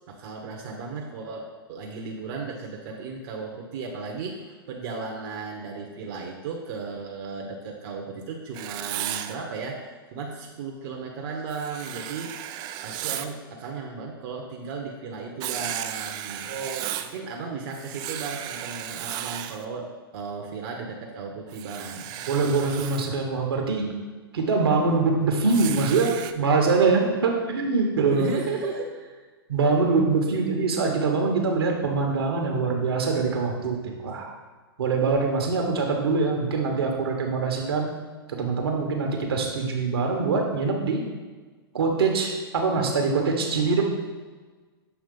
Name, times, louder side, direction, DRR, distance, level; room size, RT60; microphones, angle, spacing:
voice 1, 0.1-12.3 12.8-16.5 17.0-19.9 20.1-22.2 28.1-29.2 30.3-30.5, right 4 dB, 50° right, 0 dB, 0.9 m, -35 dB
Writing, 8.5-9.3 11.5-13.3 15.4-17.2 17.7-19.6 21.5-23.1 25.5-26.3, right 12 dB, 35° right, 0.4 m, -34 dB
voice 2, 16.5-16.9 22.3-24.0 24.3-28.3 29.5-34.3 34.8-37.9 38.3-41.0 41.7-43.8, right 4 dB, 75° right, 1 dB, 1.2 m, -24 dB
7.0 x 2.9 x 5.3 m, 1.4 s
hypercardioid pair, 115°, 13 cm